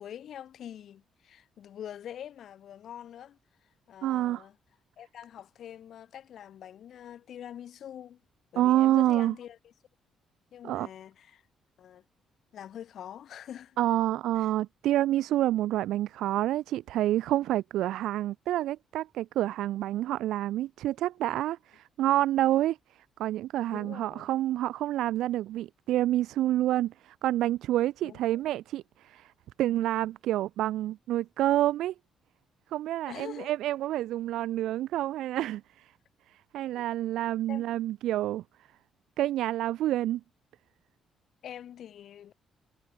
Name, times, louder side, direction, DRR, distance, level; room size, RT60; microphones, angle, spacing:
voice 1, 0.0-3.4 3.9-4.5 5.0-8.2 8.5-9.7 10.5-11.4 11.8-12.0 12.5-13.8 14.3-14.5 23.7-24.3 28.0-28.4 33.1-33.5 36.7-36.8 37.5-37.7 41.4-42.3, left 10 dB, 65° left, 6.8 m, -44 dB
voice 2, 4.0-4.4 8.6-9.3 10.6-10.9 13.8-29.3 29.6-31.9 32.7-35.9 36.3-38.4 39.2-40.2, right 14 dB, 85° right, 3.1 m, -28 dB
cardioid pair, 90°, 0 cm